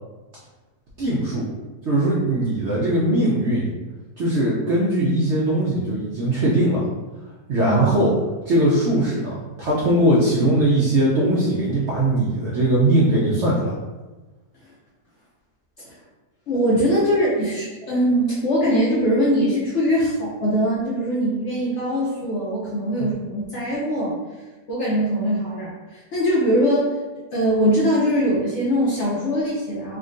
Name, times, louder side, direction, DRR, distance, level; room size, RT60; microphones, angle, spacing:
voice 1, 1.0-1.4 1.9-3.7 4.2-6.8 7.5-8.1 8.5-13.7 23.0-23.1, right 1 dB, 70° right, -6 dB, 0.6 m, -20 dB
voice 2, 7.6-8.1 15.8-16.0 16.5-24.1 24.7-26.9 27.3-30.0, equal, 65° left, -6 dB, 0.7 m, -22 dB
3.4 x 2.2 x 2.4 m, 1.2 s
omnidirectional pair, 1.7 m